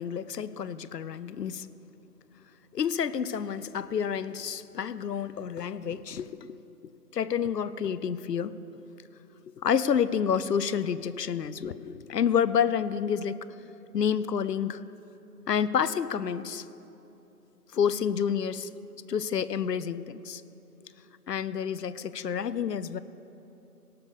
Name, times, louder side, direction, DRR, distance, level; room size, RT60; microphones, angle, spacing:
voice 1, 0.0-1.7 2.7-6.5 7.1-8.5 9.6-13.4 13.9-14.8 15.5-16.6 17.7-18.7 19.1-20.4 21.3-23.0, left 7 dB, 80° left, 16 dB, 0.7 m, -29 dB
18.0 x 7.0 x 5.1 m, 3.0 s
figure-of-eight pair, 170°, 48 cm